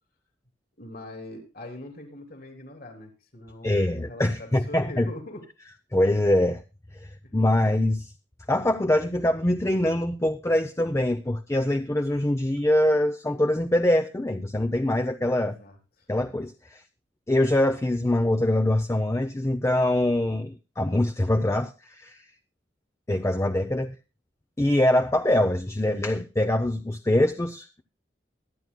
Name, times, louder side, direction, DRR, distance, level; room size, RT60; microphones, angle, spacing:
voice 1, 0.8-5.4 15.4-15.7, left 1 dB, 55° left, 3.2 m, -42 dB
voice 2, 3.6-5.1 5.9-6.6 7.0-8.1 8.5-15.6 16.1-16.8 17.3-22.2 23.1-24.0 24.6-27.8, left 1 dB, 15° left, 0.6 m, -24 dB
23.0 x 9.3 x 2.2 m
head